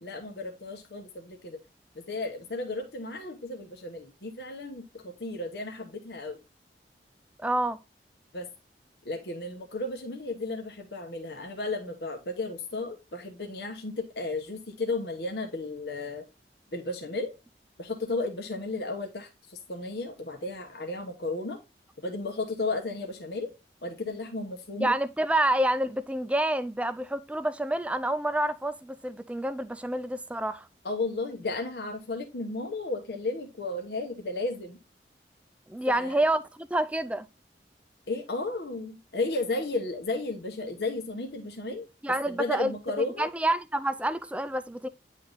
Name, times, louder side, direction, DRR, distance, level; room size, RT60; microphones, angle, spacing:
voice 1, 0.0-1.6 1.9-6.4 8.3-8.5 9.0-16.2 16.7-17.3 17.8-21.6 22.0-23.5 23.8-24.9 30.8-34.8 35.8-36.2 38.1-41.8 42.3-43.3, left 2 dB, 70° left, 1.1 m, -34 dB
voice 2, 7.4-7.8 24.8-30.7 35.7-37.3 42.0-44.9, right 1 dB, 5° right, 0.4 m, -28 dB
9.4 x 3.7 x 3.8 m
head